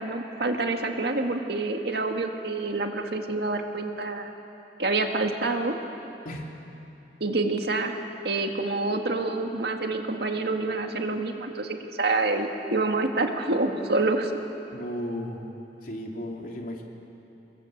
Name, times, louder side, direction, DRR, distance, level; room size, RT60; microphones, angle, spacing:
voice 1, 0.0-4.3 4.8-5.8 7.2-7.9 8.2-14.3, right 3 dB, 65° right, 4 dB, 2.0 m, -27 dB
voice 2, 14.7-15.5 15.8-16.8, equal, 55° left, 0 dB, 3.1 m, -34 dB
27.5 x 22.5 x 8.1 m, 2.9 s
head